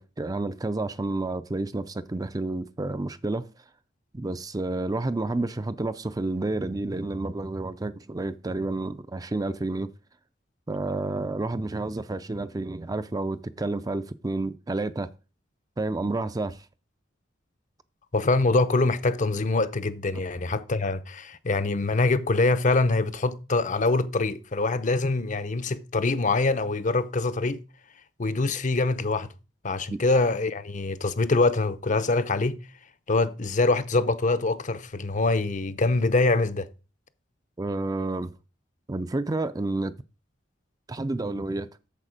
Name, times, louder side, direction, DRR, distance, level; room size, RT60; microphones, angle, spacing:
voice 1, 0.0-3.4 4.1-9.9 10.7-15.1 15.8-16.6 20.1-20.2 29.9-30.0 37.6-38.3 38.9-39.9 40.9-41.7, right 2 dB, 20° right, 0.5 m, -30 dB
voice 2, 18.1-27.6 28.2-29.3 29.6-32.6 33.1-36.7, left 3 dB, 40° left, 0.7 m, -24 dB
8.4 x 6.8 x 5.1 m
head